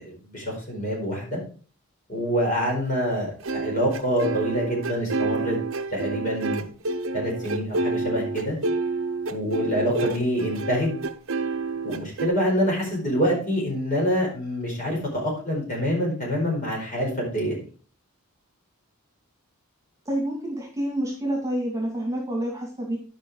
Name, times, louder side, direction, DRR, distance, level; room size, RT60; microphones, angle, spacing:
voice 1, 0.0-1.4 2.1-5.6 5.9-6.7 7.1-8.5 9.3-10.9 11.8-17.6, equal, 35° left, -2 dB, 4.6 m, -26 dB
sound 1, 3.4-12.3, right 3 dB, 65° right, 0.9 m, -28 dB
voice 2, 20.0-23.0, right 1 dB, 15° right, -2 dB, 2.5 m, -28 dB
11.0 x 5.4 x 4.8 m, 0.38 s
head